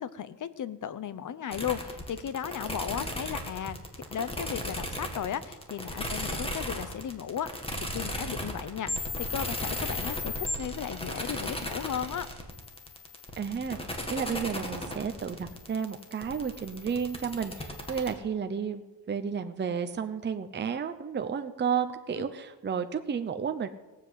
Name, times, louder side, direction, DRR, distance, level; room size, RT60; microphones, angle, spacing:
voice 1, 0.0-7.5 7.8-12.3 22.2-22.3, left 9 dB, 45° left, 15 dB, 0.9 m, -35 dB
sound 1, 1.5-18.1, left 1 dB, 15° left, 2.1 m, -36 dB
voice 2, 13.4-13.8 14.1-23.7, right 6 dB, 25° right, 8 dB, 0.8 m, -32 dB
18.0 x 7.8 x 8.0 m, 1.2 s
cardioid pair, 125°, 41 cm